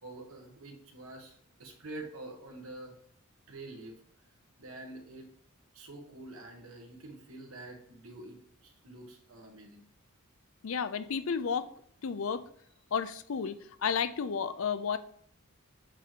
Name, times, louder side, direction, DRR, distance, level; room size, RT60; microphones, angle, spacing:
voice 1, 0.0-2.9 3.5-3.9 4.6-5.3 5.7-9.8, right 2 dB, 75° right, 2 dB, 1.5 m, -47 dB
voice 2, 10.6-11.7 12.0-12.4 12.9-15.0, left 6 dB, 65° left, 13 dB, 0.5 m, -32 dB
8.3 x 3.0 x 4.9 m, 0.63 s
head